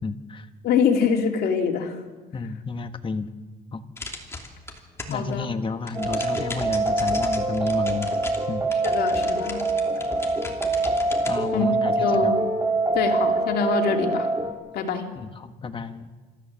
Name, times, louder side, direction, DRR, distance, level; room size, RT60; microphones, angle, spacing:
voice 1, 0.0-0.5 2.3-3.3 3.7-3.8 5.1-8.1 8.5-8.6 11.2-12.3 15.2-16.1, left 4 dB, 30° left, 9 dB, 1.4 m, -31 dB
voice 2, 0.6-2.0 5.1-5.5 8.8-9.6 11.5-11.7 12.0-12.4 12.9-14.3 14.7-15.1, left 6 dB, 70° left, 3 dB, 2.8 m, -24 dB
sound 1, 4.0-5.3 5.6-11.3, left 2 dB, 15° left, 2.9 m, -37 dB
sound 2, 5.9-14.5, right 2 dB, 20° right, 3.4 m, -24 dB
26.5 x 14.5 x 7.4 m, 1.3 s
cardioid pair, 110°, 17 cm